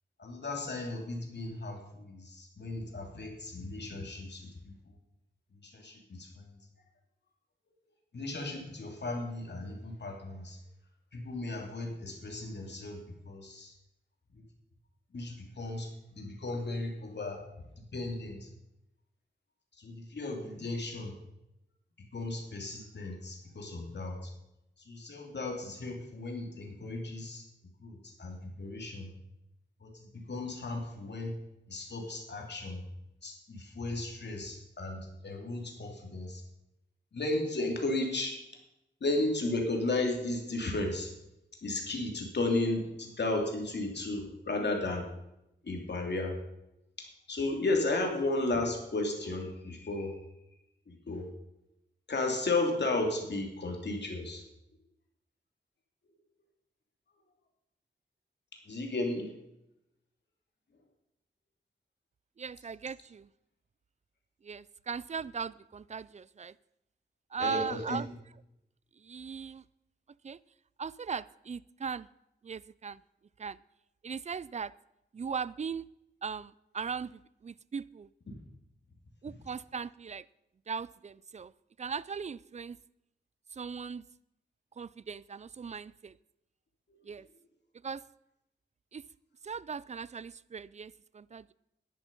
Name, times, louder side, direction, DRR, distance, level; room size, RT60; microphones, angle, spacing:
voice 1, 0.2-5.0 5.5-6.6 8.1-10.6 11.1-13.7 14.3-14.4 15.1-17.5 17.9-18.5 19.7-21.1 22.0-24.3 24.8-27.4 27.8-29.1 29.8-31.4 31.7-32.8 33.2-36.4 37.1-38.4 39.0-41.1 41.6-45.1 45.6-46.4 47.0-50.2 50.9-51.3 52.1-54.4 58.6-59.3 67.4-68.0 86.9-87.0, left 2 dB, 65° left, 2 dB, 2.7 m, -34 dB
voice 2, 62.4-63.3 64.4-66.6 67.3-68.1 69.0-69.6 70.2-70.4 70.8-72.1 72.4-73.0 73.4-73.6 74.0-74.7 75.1-75.9 76.2-78.1 79.2-80.3 80.7-81.5 81.8-82.8 83.5-84.0 84.8-86.2 87.0-87.3 87.8-88.0 88.9-89.0 89.4-91.5, right 6 dB, 35° right, 20 dB, 0.4 m, -38 dB
10.5 x 10.5 x 5.3 m, 0.86 s
wide cardioid pair, 90°, 19 cm